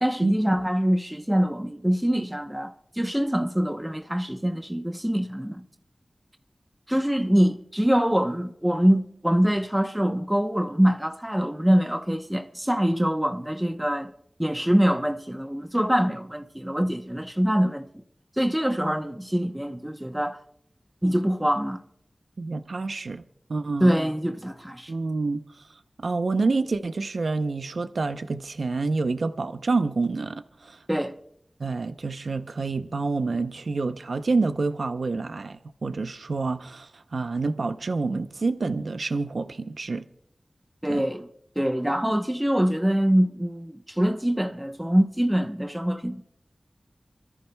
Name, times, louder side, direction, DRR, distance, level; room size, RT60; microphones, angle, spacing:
voice 1, 0.0-5.6 6.9-14.1 14.4-17.9 18.4-20.4 21.0-21.8 23.8-24.9 30.9-31.2 40.8-41.3 41.6-46.3, equal, 10° right, 0.8 m, -24 dB
voice 2, 22.4-23.2 23.5-23.9 24.9-30.8 31.6-40.1 40.9-41.0, right 3 dB, 85° right, 0.6 m, -28 dB
27.5 x 13.5 x 2.2 m
wide cardioid pair, 60°, 0 cm